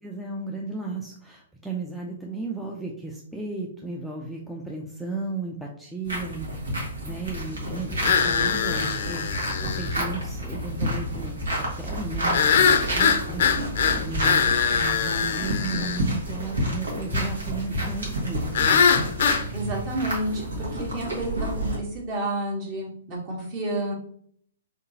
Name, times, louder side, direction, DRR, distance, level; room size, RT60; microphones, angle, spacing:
voice 1, 0.0-9.2 9.6-13.4 14.0-18.8, right 3 dB, ahead, -2 dB, 0.5 m, -35 dB
sound 1, 6.0-21.8, equal, 75° right, 1.5 m, -30 dB
sound 2, 8.0-10.0 12.3-16.0 18.5-19.4, left 6 dB, 55° left, 0.5 m, -22 dB
voice 2, 19.5-23.9, right 1 dB, 35° right, -2 dB, 1.5 m, -30 dB
3.8 x 3.7 x 2.7 m, 0.63 s
figure-of-eight pair, 120°, 0 cm